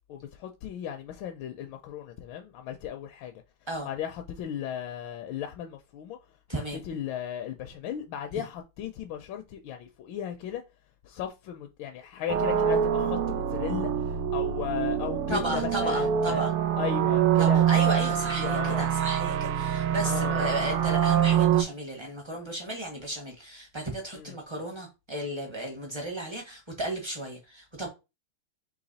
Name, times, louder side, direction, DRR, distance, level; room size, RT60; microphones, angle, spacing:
voice 1, 0.1-3.3 3.8-6.2 6.5-10.6 11.0-16.5 16.8-17.6 18.4-18.8 20.0-20.7 24.1-24.3, left 9 dB, 75° left, 1.2 m, -36 dB
voice 2, 6.5-6.8 8.3-8.4 15.3-16.5 17.4-27.9, right 1 dB, 30° right, 0.5 m, -34 dB
sound 1, 12.3-21.6, right 9 dB, 90° right, 1.5 m, -25 dB
4.0 x 3.0 x 3.9 m
omnidirectional pair, 2.4 m